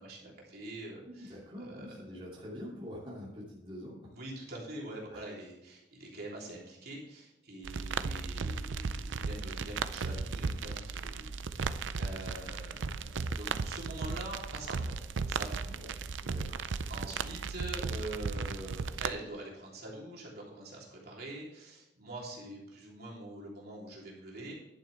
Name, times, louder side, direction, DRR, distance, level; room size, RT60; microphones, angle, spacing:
voice 1, 0.0-1.9 4.1-15.6 16.9-24.5, right 2 dB, 55° right, -3 dB, 3.2 m, -44 dB
voice 2, 1.0-4.1 5.1-5.2 15.7-15.9 16.2-16.6, equal, 30° right, -6 dB, 2.6 m, -45 dB
sound 1, 7.6-19.1, right 4 dB, 85° right, 0.5 m, -36 dB
11.0 x 9.1 x 3.4 m, 0.93 s
head